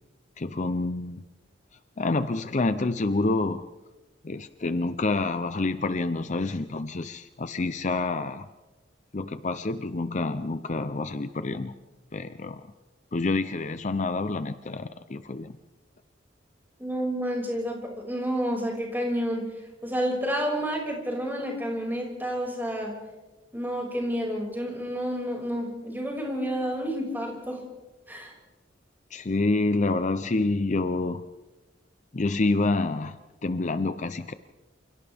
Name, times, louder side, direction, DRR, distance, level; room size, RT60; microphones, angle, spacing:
voice 1, 0.4-1.2 2.0-3.6 4.2-8.5 9.1-11.7 12.1-12.7 13.1-15.5 29.1-31.2 32.1-34.3, left 3 dB, 40° left, 11 dB, 0.6 m, -28 dB
voice 2, 16.8-23.0 23.5-27.6 28.1-28.3, equal, 10° right, -1 dB, 5.8 m, -30 dB
28.0 x 28.0 x 3.5 m, 1.1 s
head